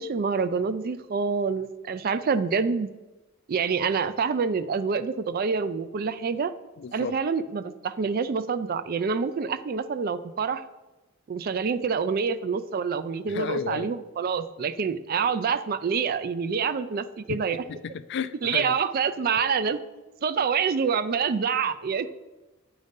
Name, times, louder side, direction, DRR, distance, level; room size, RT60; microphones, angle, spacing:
voice 1, 0.0-2.9 3.5-6.5 6.9-10.7 11.3-17.6 18.4-19.8 20.2-22.1, right 5 dB, 45° right, 12 dB, 0.4 m, -27 dB
voice 2, 6.8-7.1 13.3-13.9 17.8-18.7, left 6 dB, 55° left, 14 dB, 0.3 m, -32 dB
8.4 x 3.9 x 5.2 m, 1.1 s
head